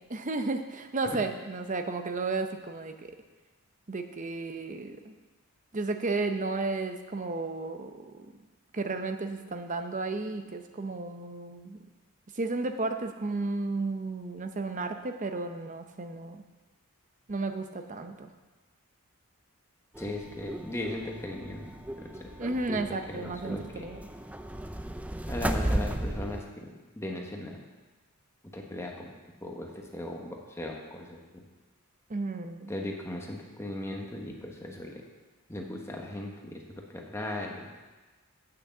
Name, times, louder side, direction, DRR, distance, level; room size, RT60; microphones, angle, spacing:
voice 1, 0.0-3.1 3.9-5.1 5.7-8.3 8.7-11.8 12.3-16.4 17.3-18.3 22.4-24.0 32.1-32.7, right 3 dB, 35° right, 7 dB, 0.7 m, -33 dB
sound 1, 19.9-26.4, right 1 dB, 5° right, 0.3 m, -35 dB
voice 2, 20.0-21.7 22.0-22.3 22.7-23.8 25.3-27.6 28.5-29.1 29.4-31.4 32.7-35.0 35.5-36.6 36.9-37.7, left 1 dB, 10° left, 0 dB, 1.1 m, -38 dB
8.8 x 6.4 x 7.1 m, 1.2 s
head